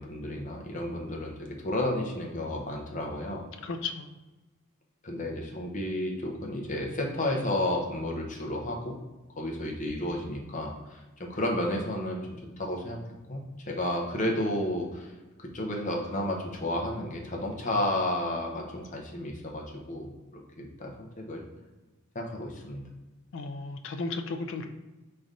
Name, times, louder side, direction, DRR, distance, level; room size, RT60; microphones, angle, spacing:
voice 1, 0.0-3.4 5.0-9.0 9.4-13.0 13.3-13.4 13.7-15.1 15.4-21.4 22.1-22.9, left 1 dB, 35° left, 0 dB, 0.8 m, -32 dB
voice 2, 3.6-4.1 23.3-24.7, left 3 dB, 60° left, 6 dB, 0.4 m, -34 dB
4.0 x 3.3 x 3.7 m, 1.1 s
head